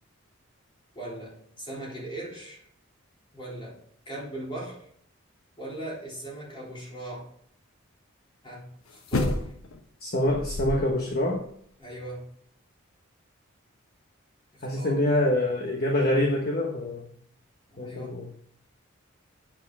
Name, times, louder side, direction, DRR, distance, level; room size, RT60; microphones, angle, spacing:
voice 1, 0.9-2.7 3.3-3.8 4.1-4.9 5.6-7.3 8.4-9.5 11.8-12.3 14.5-15.2 17.7-18.1, right 1 dB, 25° left, -5 dB, 3.6 m, -39 dB
sound 1, 9.1-9.8 10.3-11.1 11.4-11.5, left 2 dB, 80° left, 0.9 m, -29 dB
voice 2, 10.0-11.4 14.6-17.1 17.8-18.3, left 1 dB, 45° left, 1 dB, 1.1 m, -25 dB
7.8 x 7.3 x 4.8 m, 0.65 s
head